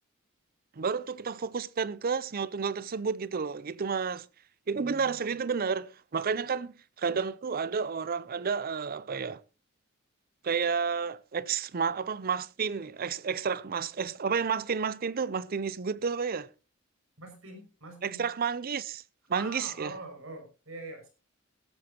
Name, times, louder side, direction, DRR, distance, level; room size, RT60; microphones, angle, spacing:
voice 1, 0.8-4.3 4.7-9.4 10.4-16.5 18.0-19.0 19.3-19.9, right 5 dB, 45° right, 0.5 m, -31 dB
voice 2, 4.7-5.2 6.2-6.3 17.2-18.2 19.3-21.1, right 2 dB, 70° right, 6.1 m, -44 dB
16.0 x 13.0 x 2.9 m
head